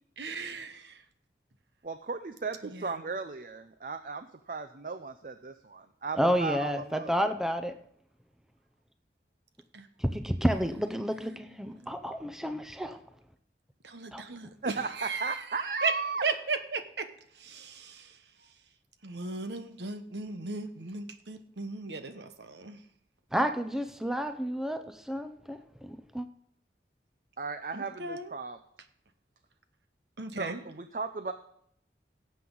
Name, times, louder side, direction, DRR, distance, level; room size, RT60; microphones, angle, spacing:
voice 1, 0.2-1.0 2.6-3.0 9.7-9.9 11.1-11.9 13.8-15.9 16.2-17.1 17.4-18.2 19.0-22.8 27.7-28.3 30.2-30.6, right 4 dB, 75° right, 1.1 m, -37 dB
voice 2, 1.8-7.1 14.6-16.3 27.4-28.6 30.4-31.3, right 4 dB, 50° right, 0.5 m, -36 dB
voice 3, 6.2-7.7 10.1-13.0 14.1-14.2 23.3-26.3, equal, 5° right, 0.6 m, -30 dB
17.5 x 7.8 x 3.9 m
head